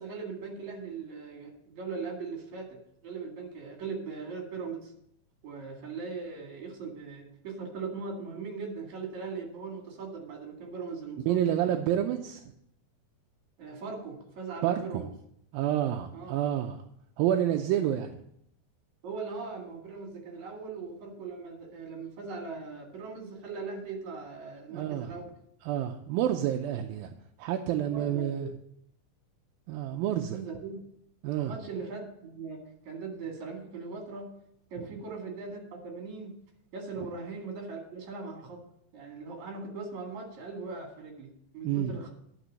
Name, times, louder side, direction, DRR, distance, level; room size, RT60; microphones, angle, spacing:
voice 1, 0.0-4.9 5.4-11.4 13.6-15.1 16.1-16.3 19.0-25.3 27.9-28.5 30.3-30.8 31.4-34.3 34.7-36.3 36.7-38.6 38.9-42.1, right 4 dB, 55° right, 1 dB, 3.4 m, -39 dB
voice 2, 11.3-12.4 14.6-15.0 15.5-16.8 17.2-18.2 24.7-25.1 25.6-28.5 29.7-30.4 31.2-31.5 34.8-34.9 37.0-37.1 41.6-41.9, right 11 dB, 80° right, 4 dB, 2.4 m, -29 dB
11.0 x 6.1 x 6.3 m, 0.72 s
omnidirectional pair, 4.2 m